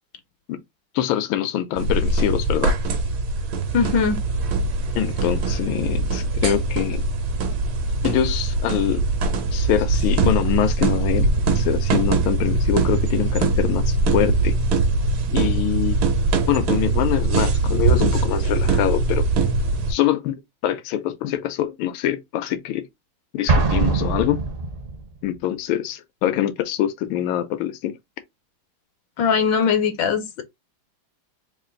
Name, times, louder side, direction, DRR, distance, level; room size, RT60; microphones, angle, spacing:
voice 1, 0.9-2.7 4.9-7.0 8.0-9.1 9.5-11.3 11.5-14.6 15.3-16.0 16.5-19.3 19.9-22.9 23.3-24.4 25.2-28.0, left 11 dB, 85° left, 1.4 m, -24 dB
sound 1, 1.8-19.9, right 3 dB, 80° right, 1.7 m, -22 dB
voice 2, 3.7-4.2 29.2-30.4, left 6 dB, 70° left, 1.2 m, -20 dB
Explosion, 23.5-25.1, right 3 dB, 55° right, 0.6 m, -22 dB
3.8 x 2.4 x 3.8 m
omnidirectional pair, 2.2 m